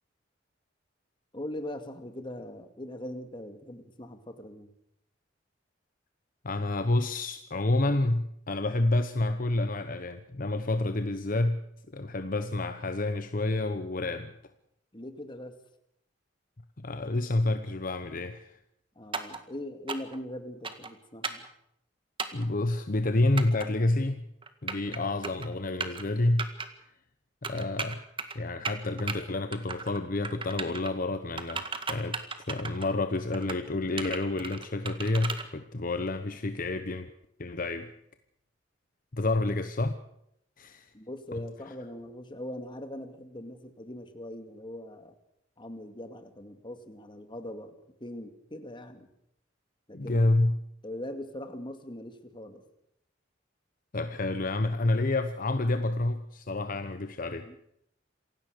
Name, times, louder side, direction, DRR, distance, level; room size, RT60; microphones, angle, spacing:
voice 1, 1.3-4.7 14.9-15.6 19.0-21.4 40.9-45.1 45.6-49.1 49.9-50.2 50.8-52.6 57.4-57.6, left 1 dB, 25° left, 7 dB, 2.3 m, -41 dB
voice 2, 6.4-11.6 11.9-14.3 16.8-18.6 22.3-24.3 24.6-26.5 27.4-28.0 28.3-32.2 32.5-37.1 37.4-37.9 39.1-40.0 40.6-40.9 41.3-41.4 49.9-50.6 53.9-57.6, left 2 dB, 50° left, 9 dB, 1.0 m, -29 dB
sound 1, 19.1-19.4 19.9-20.2 20.6-20.9 21.2-21.5 22.2-22.5 23.4-23.7 24.4-25.0 25.2-25.5 25.8-26.0 26.4-26.7 27.4-28.4 28.7-29.2 29.5-30.0 30.2-30.9 31.4-32.9 33.3-33.6 34.0-35.4, right 4 dB, 30° right, 1.8 m, -35 dB
27.5 x 16.5 x 6.7 m, 0.76 s
head